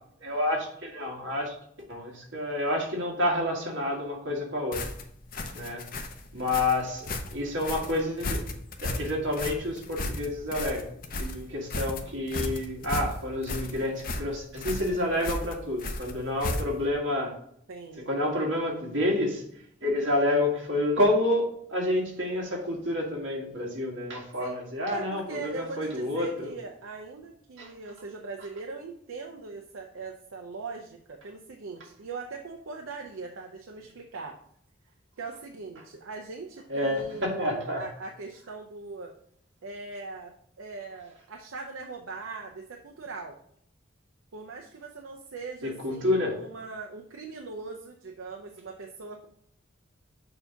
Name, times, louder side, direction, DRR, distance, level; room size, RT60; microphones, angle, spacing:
voice 1, 0.2-1.5 1.9-4.8 5.5-5.9 6.3-8.4 8.8-17.3 18.1-19.4 19.8-26.5 27.6-27.7 36.7-37.8 45.6-46.3, left 1 dB, 65° right, -1 dB, 1.8 m, -29 dB
sound 1, 4.7-16.9, left 2 dB, 45° left, 0.6 m, -34 dB
voice 2, 17.7-18.0 24.4-24.6 24.9-34.4 35.2-39.1 39.6-40.3 40.6-43.4 44.3-49.3, right 4 dB, 85° right, 1 dB, 0.6 m, -40 dB
6.8 x 2.8 x 5.6 m, 0.68 s
head